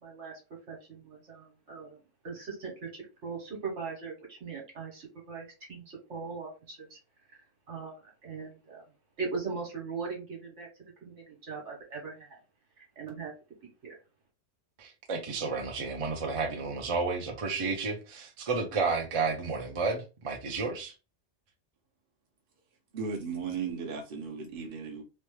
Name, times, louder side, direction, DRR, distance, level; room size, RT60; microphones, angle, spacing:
voice 1, 0.0-0.3 0.7-2.0 2.2-7.0 7.7-8.8 9.2-10.7 11.0-12.4 12.8-13.3 13.6-14.0, right 5 dB, 75° right, 1.6 m, -40 dB
voice 2, 14.8-20.9, right 4 dB, 35° right, 0.6 m, -31 dB
voice 3, 22.9-25.0, right 5 dB, 50° right, 0.9 m, -36 dB
3.2 x 2.2 x 3.1 m
omnidirectional pair, 1.2 m